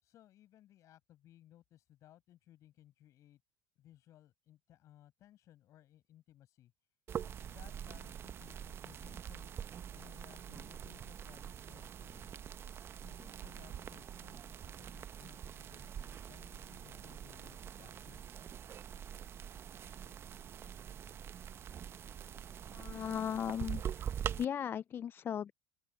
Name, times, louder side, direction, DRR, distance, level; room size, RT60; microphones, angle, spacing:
voice 1, 0.0-3.4 3.8-6.7 7.5-9.5 9.9-12.3 13.0-18.2, left 13 dB, 50° left, 6.7 m, -61 dB
sound 1, 7.1-24.4, right 9 dB, 35° right, 0.9 m, -44 dB
sound 2, 13.4-16.9, left 20 dB, 75° left, 3.3 m, -69 dB
voice 2, 22.7-23.8 24.4-25.5, left 9 dB, 30° left, 0.5 m, -37 dB
open air
hypercardioid pair, 85°, 7 cm